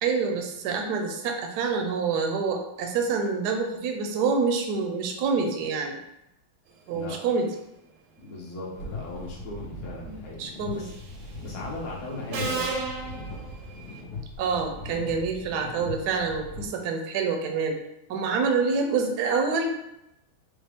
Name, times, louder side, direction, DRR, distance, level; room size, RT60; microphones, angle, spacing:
voice 1, 0.0-6.0 6.9-7.5 10.1-10.7 14.4-17.8 18.1-19.7, right 5 dB, 70° right, 3 dB, 1.0 m, -27 dB
voice 2, 8.2-10.4 10.7-10.9 11.2-12.7, left 2 dB, 45° left, -4 dB, 1.2 m, -38 dB
sound 1, 8.7-16.7, left 2 dB, 70° left, 1.7 m, -40 dB
Subway metro underground, 10.8-11.2 12.3-14.0, right 4 dB, 85° right, 1.5 m, -33 dB
5.0 x 2.3 x 3.4 m, 0.85 s
omnidirectional pair, 2.2 m